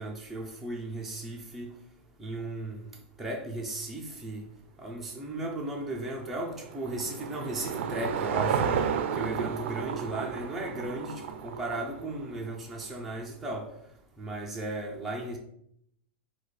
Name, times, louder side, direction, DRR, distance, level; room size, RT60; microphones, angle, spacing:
voice 1, 0.0-1.7 2.2-2.9 3.2-4.4 4.8-8.7 9.1-13.7 14.2-15.4, right 2 dB, 5° right, -3 dB, 0.4 m, -36 dB
Car passing by / Engine, 5.9-12.4, right 7 dB, 85° right, 0.4 m, -32 dB
4.7 x 2.2 x 4.1 m, 0.73 s
supercardioid pair, 170°, 6 cm